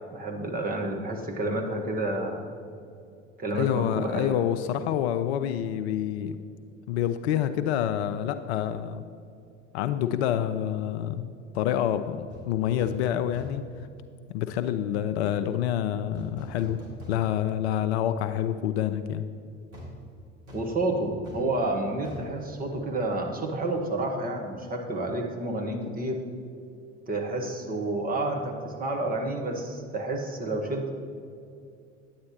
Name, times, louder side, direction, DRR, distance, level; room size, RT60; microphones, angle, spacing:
voice 1, 0.1-2.5 3.4-4.4 20.5-26.2 27.1-30.9, right 2 dB, 20° right, 1 dB, 1.2 m, -30 dB
voice 2, 3.5-6.4 6.9-9.0 9.7-13.6 14.3-16.8 17.1-19.2, left 10 dB, 55° left, 10 dB, 0.5 m, -27 dB
sound 1, 12.3-12.5 12.8-13.1 13.3-13.7 16.1-17.6 18.0-18.1 19.7-23.4 23.6-23.8, left 1 dB, 75° right, 2.1 m, -44 dB
9.5 x 8.5 x 2.9 m, 2.4 s
figure-of-eight pair, 75°, 38 cm